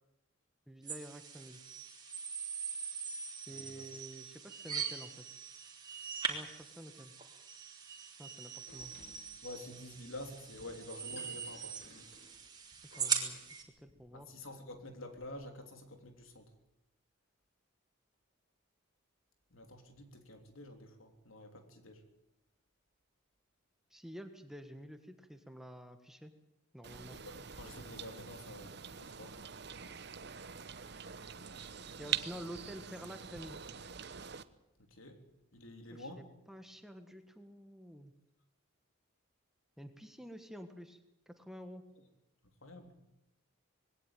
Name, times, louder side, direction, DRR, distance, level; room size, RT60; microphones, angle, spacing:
voice 1, 0.7-1.6 3.5-5.2 6.3-7.1 8.2-8.9 12.9-14.3 23.9-26.3 26.7-27.2 32.0-33.6 35.9-38.1 39.8-41.0 41.3-41.9, equal, ahead, 7 dB, 1.5 m, -49 dB
sound 1, 0.9-13.6, right 6 dB, 20° right, 3.3 m, -41 dB
voice 2, 3.5-3.8 9.4-12.1 14.1-16.5 19.5-22.0 27.2-29.4 34.8-35.2 35.5-36.3 42.4-43.0, left 1 dB, 80° left, 5 dB, 3.5 m, -49 dB
Door, 8.7-15.3, left 2 dB, 55° left, 5.2 m, -60 dB
sound 2, 26.8-34.4, right 8 dB, 55° right, 0.9 m, -44 dB
21.0 x 17.5 x 9.1 m, 0.89 s
head